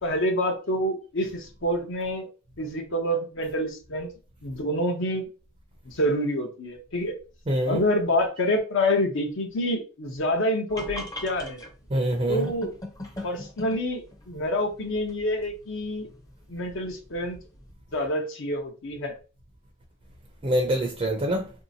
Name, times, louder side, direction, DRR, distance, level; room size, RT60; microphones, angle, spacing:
voice 1, 0.0-2.3 2.6-4.1 4.4-5.2 5.9-7.1 7.7-11.6 12.3-12.7 13.2-16.1 16.5-17.4 17.9-19.2, left 1 dB, 60° left, 0.7 m, -27 dB
voice 2, 7.5-7.8 11.9-12.5 20.4-21.5, right 1 dB, 30° right, 0.5 m, -25 dB
sound 1, 10.7-17.7, left 1 dB, 15° left, 0.6 m, -42 dB
3.1 x 2.7 x 2.7 m
head